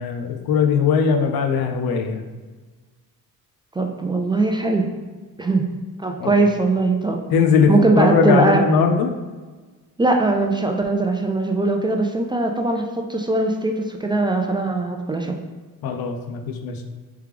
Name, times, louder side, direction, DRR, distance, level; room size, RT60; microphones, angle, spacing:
voice 1, 0.0-2.3 6.2-6.3 7.3-9.1 15.8-16.8, left 5 dB, 85° left, 5 dB, 0.6 m, -19 dB
voice 2, 3.8-4.9 5.4-5.7 6.0-7.2 7.7-8.6 10.0-15.3, right 2 dB, 15° right, 2 dB, 0.3 m, -20 dB
3.5 x 3.2 x 3.3 m, 1.4 s
cardioid pair, 85°, 36 cm